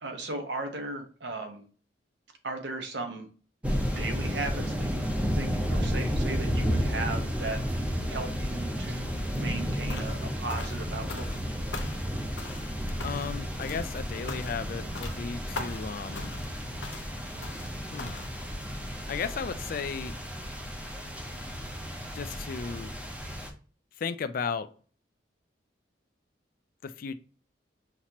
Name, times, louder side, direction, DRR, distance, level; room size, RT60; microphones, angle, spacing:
voice 1, 0.0-1.6 2.4-3.3 4.0-5.0 5.3-11.3, right 2 dB, 70° right, 4 dB, 1.1 m, -37 dB
sound 1, 3.6-23.5, equal, 10° right, 0.7 m, -32 dB
sound 2, 9.9-10.2 10.5-11.5 11.7-12.1 12.4-12.7 13.0-13.4 13.6-13.9 14.3-14.7 15.0-15.2 15.6-15.9 16.2-16.5 16.8-17.1 17.4-17.7 18.0-18.3, left 4 dB, 90° left, 0.8 m, -41 dB
voice 2, 13.0-16.3 17.9-18.2 19.1-20.2 22.1-22.9 24.0-24.7 26.8-27.1, left 6 dB, 50° left, 11 dB, 0.4 m, -35 dB
5.8 x 3.0 x 2.9 m, 0.40 s
head